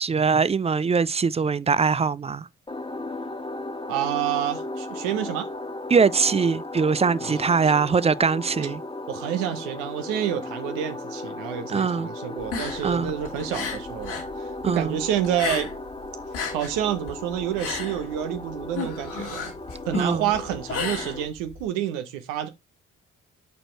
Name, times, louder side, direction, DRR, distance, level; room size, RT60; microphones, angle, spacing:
voice 1, 0.0-2.5 5.9-8.8 11.7-12.1 12.8-13.1 14.6-15.0 19.9-20.3, right 5 dB, 20° right, 0.4 m, -22 dB
sound 1, 2.7-21.2, left 2 dB, 15° left, 1.4 m, -36 dB
voice 2, 3.9-5.5 7.2-7.7 9.1-15.7 16.5-19.5 19.8-22.5, right 11 dB, 85° right, 0.9 m, -29 dB
sound 2, 12.4-14.3 14.6-15.9 16.2-21.6, left 5 dB, 75° left, 2.1 m, -33 dB
5.3 x 4.4 x 4.4 m
hypercardioid pair, 50°, 31 cm